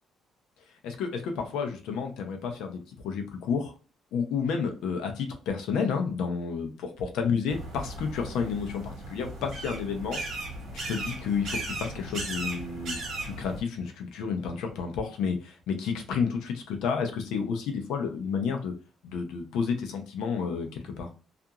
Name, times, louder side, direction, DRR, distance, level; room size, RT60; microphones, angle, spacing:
voice 1, 0.8-3.7 4.1-10.4 10.7-18.7 19.0-21.1, left 6 dB, 85° left, 5 dB, 0.6 m, -31 dB
sound 1, 7.5-13.6, right 2 dB, 55° right, 1.3 m, -37 dB
2.8 x 2.5 x 2.4 m, 0.35 s
cardioid pair, 160°, 0 cm